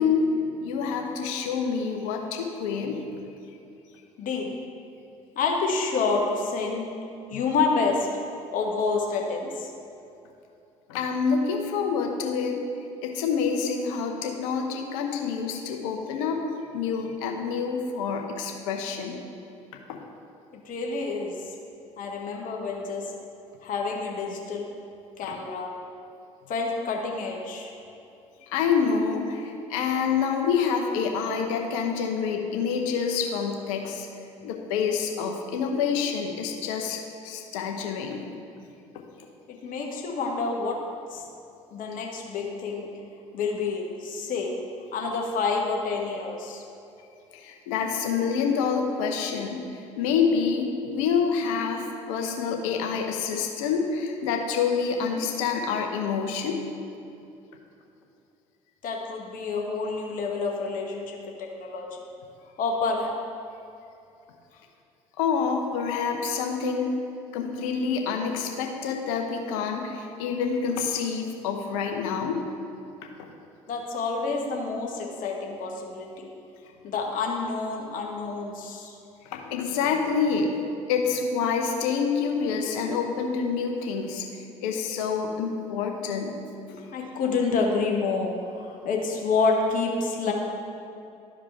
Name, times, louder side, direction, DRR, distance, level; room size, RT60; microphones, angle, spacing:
voice 1, 0.0-3.1 7.3-7.4 10.9-12.6 13.0-16.4 16.7-19.2 19.7-20.0 25.2-25.3 28.4-34.1 34.4-38.3 47.3-56.6 65.2-66.9 67.3-72.4 73.0-73.3 79.2-80.5 80.9-86.4, left 6 dB, 75° left, 3 dB, 0.9 m, -27 dB
voice 2, 4.2-4.5 5.3-6.9 7.3-8.1 8.5-9.7 20.6-21.3 22.0-23.0 23.6-24.7 25.2-25.7 26.5-27.7 39.5-40.8 41.1-41.2 41.7-42.9 43.3-44.6 44.9-46.6 58.8-61.9 62.6-63.1 73.7-76.3 76.8-78.9 86.7-90.3, left 4 dB, 55° left, 0 dB, 1.3 m, -28 dB
12.5 x 4.9 x 3.5 m, 2.7 s
hypercardioid pair, 55°, 17 cm